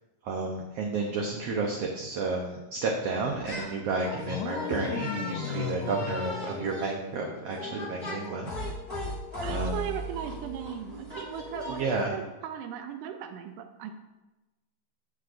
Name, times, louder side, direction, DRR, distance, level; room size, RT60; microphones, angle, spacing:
voice 1, 0.2-8.5 9.5-9.9 11.7-12.1, right 3 dB, 70° right, 0 dB, 1.6 m, -31 dB
sound 1, 3.3-3.7 4.0-12.0, left 1 dB, 25° left, 1.2 m, -37 dB
sound 2, 4.2-7.4, left 10 dB, 80° left, 1.6 m, -36 dB
voice 2, 9.4-11.8 12.1-14.0, right 8 dB, 90° right, 6 dB, 2.2 m, -38 dB
16.0 x 6.4 x 2.6 m, 1.1 s
omnidirectional pair, 3.8 m